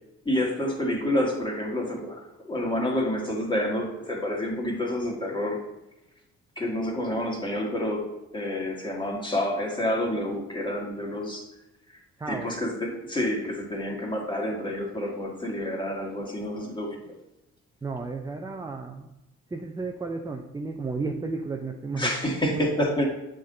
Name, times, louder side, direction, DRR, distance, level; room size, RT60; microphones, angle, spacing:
voice 1, 0.3-5.6 6.6-11.5 12.3-17.0 22.0-23.0, left 1 dB, 15° left, -1 dB, 1.7 m, -28 dB
voice 2, 12.2-12.5 17.8-19.1 19.5-22.1 22.5-22.6 23.0-23.1, right 3 dB, 10° right, 3 dB, 0.5 m, -33 dB
7.5 x 3.9 x 3.8 m, 0.94 s
cardioid pair, 90°, 30 cm